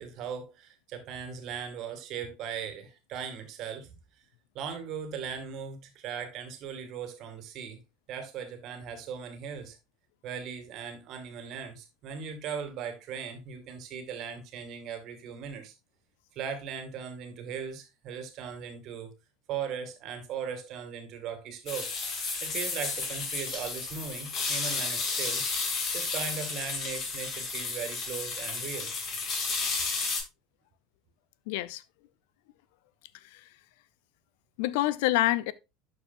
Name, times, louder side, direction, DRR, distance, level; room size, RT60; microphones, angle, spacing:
voice 1, 0.0-4.0 4.5-7.8 8.1-9.8 10.2-15.7 16.3-19.1 19.5-21.9 22.4-25.6 25.9-28.9, right 7 dB, 55° right, 2.1 m, -38 dB
sound 1, 21.7-30.2, left 4 dB, 45° left, 2.6 m, -32 dB
voice 2, 31.5-31.8 33.3-33.4 34.6-35.5, left 16 dB, 70° left, 0.5 m, -27 dB
12.0 x 4.7 x 2.6 m
hypercardioid pair, 75°, 0 cm